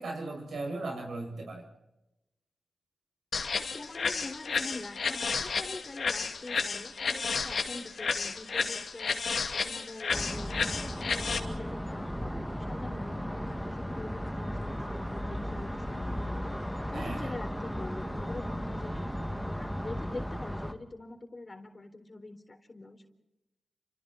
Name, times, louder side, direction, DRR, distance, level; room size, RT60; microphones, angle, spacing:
voice 1, 0.0-1.6 16.9-17.3, right 2 dB, 80° right, 1 dB, 7.3 m, -37 dB
sound 1, 3.3-11.4, left 5 dB, 70° left, 2.5 m, -32 dB
voice 2, 3.6-9.2 9.5-10.7 11.0-16.6 16.9-19.1 19.6-23.1, left 2 dB, 40° left, 6 dB, 3.8 m, -44 dB
sound 2, 10.1-20.7, equal, ahead, 2.3 m, -35 dB
29.0 x 26.5 x 4.5 m, 0.94 s
cardioid pair, 50°, 0 cm